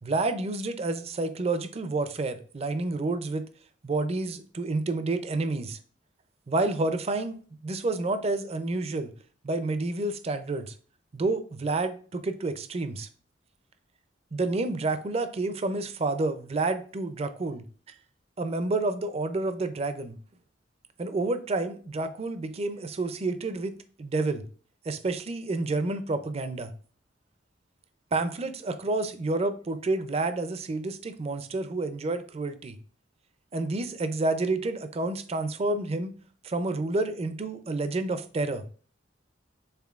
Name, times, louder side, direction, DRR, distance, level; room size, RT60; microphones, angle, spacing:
voice 1, 0.0-3.5 3.8-5.8 6.5-7.4 7.6-9.1 9.4-10.7 11.1-13.1 14.3-17.6 18.4-20.2 21.0-24.4 24.9-26.7 28.1-32.8 33.5-36.1 36.4-38.6, right 2 dB, 35° right, 0.4 m, -29 dB
5.7 x 3.8 x 2.4 m
head